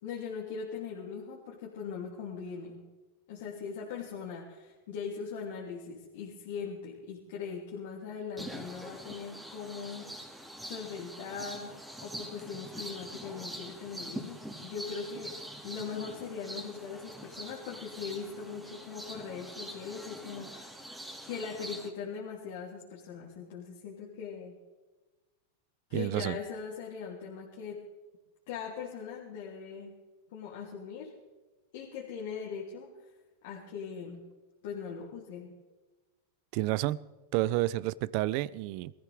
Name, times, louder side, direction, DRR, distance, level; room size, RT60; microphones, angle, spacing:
voice 1, 0.0-2.9 3.3-10.1 10.6-11.7 12.0-20.8 21.2-24.5 25.9-27.8 28.5-29.9 30.3-31.1 31.7-32.9 33.4-34.3 34.6-35.6, left 6 dB, 65° left, -5 dB, 3.0 m, -40 dB
sound 1, 8.4-21.9, right 1 dB, 5° right, 2.4 m, -44 dB
voice 2, 25.9-26.4 36.5-37.0 37.3-38.9, right 17 dB, 55° right, 20 dB, 0.5 m, -30 dB
21.5 x 14.5 x 3.6 m, 1.2 s
hypercardioid pair, 115°, 0 cm